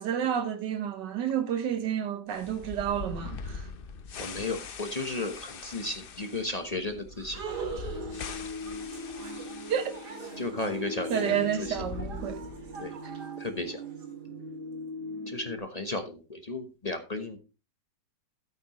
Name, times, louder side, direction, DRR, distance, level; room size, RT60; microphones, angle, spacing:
voice 1, 0.0-3.7 9.7-10.0 11.1-12.4 13.0-13.1, right 9 dB, 90° right, 1.6 m, -30 dB
sound 1, 2.3-10.5 10.8-10.9 11.5-12.9, left 5 dB, 50° left, 0.7 m, -42 dB
voice 2, 4.2-7.4 10.4-11.8 12.8-13.0 13.4-13.8 15.3-17.4, left 2 dB, 25° left, 1.0 m, -34 dB
sound 2, 7.2-14.1, right 5 dB, 70° right, 2.7 m, -43 dB
sound 3, 7.9-15.6, left 1 dB, 35° right, 2.1 m, -40 dB
13.0 x 8.5 x 3.1 m
omnidirectional pair, 1.8 m